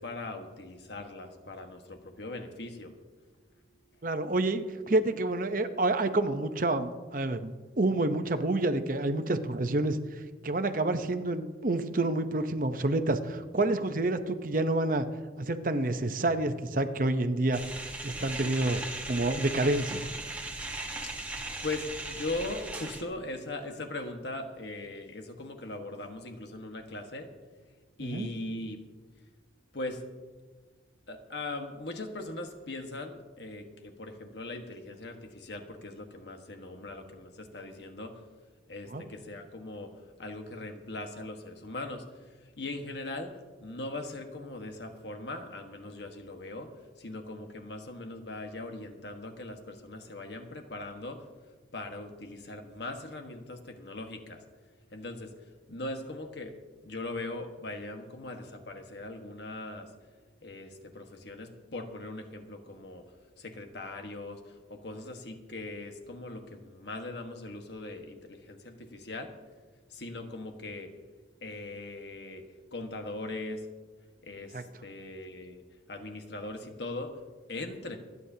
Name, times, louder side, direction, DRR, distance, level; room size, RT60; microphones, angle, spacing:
voice 1, 0.0-2.9 21.2-27.3 28.0-28.8 29.7-30.0 31.1-38.2 38.7-39.9 40.2-42.0 42.6-43.3 43.6-46.7 47.0-51.2 51.7-54.4 54.9-55.3 55.7-56.5 56.8-59.9 60.4-63.0 63.4-69.3 69.9-70.9 71.4-72.4 72.7-73.7 74.2-75.6 75.9-77.2 77.5-78.0, left 2 dB, 70° left, 4 dB, 1.5 m, -40 dB
voice 2, 4.0-10.0 10.4-15.1 15.4-17.6 18.0-20.1 28.0-28.3 38.9-39.0 74.5-74.6, right 2 dB, 45° right, 9 dB, 0.8 m, -28 dB
sound 1, 17.5-23.0, right 2 dB, 10° right, 1.2 m, -38 dB
28.0 x 9.6 x 2.8 m, 1.3 s
head